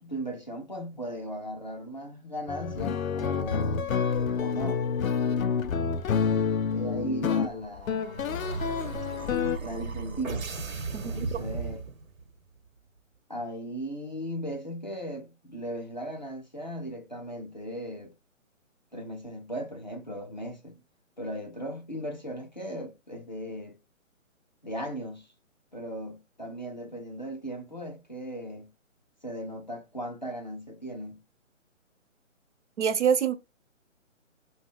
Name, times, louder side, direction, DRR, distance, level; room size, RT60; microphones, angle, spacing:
voice 1, 0.0-3.8 4.4-4.8 6.7-8.1 9.6-10.5 11.0-11.8 13.3-18.1 18.9-20.8 21.2-23.8 24.6-25.3 25.7-28.7 29.2-31.2, right 1 dB, 35° left, 0.4 m, -37 dB
sound 1, 2.5-9.6, left 6 dB, 85° left, 0.5 m, -28 dB
sound 2, 7.4-12.3, right 4 dB, 85° right, 0.9 m, -36 dB
voice 2, 10.9-11.4 32.8-33.3, right 7 dB, 60° right, 0.6 m, -26 dB
2.5 x 2.1 x 3.5 m
hypercardioid pair, 175°, 40 cm